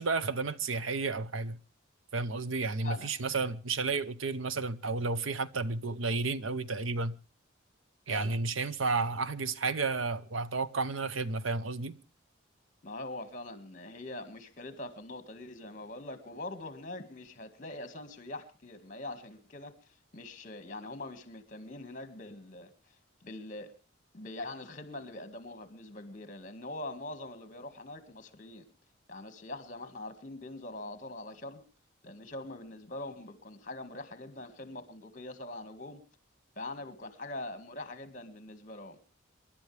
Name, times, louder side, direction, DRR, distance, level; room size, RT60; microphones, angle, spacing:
voice 1, 0.0-1.6 2.1-7.2 8.1-12.0, right 4 dB, 85° right, 0.8 m, -32 dB
voice 2, 2.8-3.1 8.1-8.4 12.8-19.7 20.1-22.7 23.2-23.7 24.1-28.7 29.1-31.6 32.0-36.0 36.6-39.0, left 2 dB, 40° left, 1.9 m, -43 dB
28.0 x 11.5 x 3.4 m
head